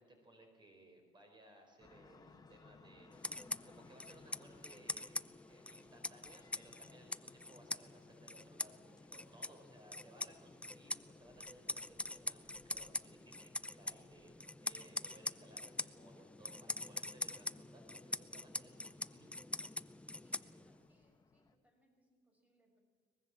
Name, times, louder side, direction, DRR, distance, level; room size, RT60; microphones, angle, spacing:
voice 1, 0.0-3.1 3.6-19.3, right 1 dB, 25° right, 4 dB, 4.6 m, -62 dB
sound 1, 1.8-21.6, left 4 dB, 20° left, 1.7 m, -65 dB
sound 2, 3.1-20.9, left 2 dB, 5° left, 0.6 m, -44 dB
voice 2, 20.2-22.8, right 1 dB, 10° right, 3 dB, 5.9 m, -75 dB
23.0 x 20.5 x 7.6 m, 1.4 s
cardioid pair, 110°, 17 cm